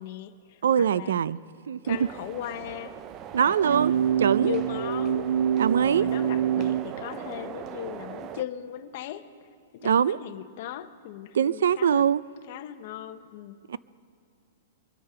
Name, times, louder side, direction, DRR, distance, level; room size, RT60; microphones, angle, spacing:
voice 1, 0.0-1.2 1.8-2.9 3.6-5.3 5.8-9.3 9.7-12.0 12.5-13.6, left 12 dB, 45° left, 12 dB, 0.7 m, -38 dB
voice 2, 0.6-1.4 1.7-2.0 3.3-3.9 4.2-4.5 5.6-6.1 9.8-10.2 11.3-12.2 13.7-13.8, right 8 dB, 90° right, 19 dB, 0.4 m, -23 dB
sound 1, 1.8-8.4, right 9 dB, 25° right, 0.4 m, -40 dB
sound 2, 3.6-6.8, right 9 dB, 75° right, 0.8 m, -25 dB
23.5 x 8.7 x 5.5 m, 2.4 s
supercardioid pair, 170°, 0 cm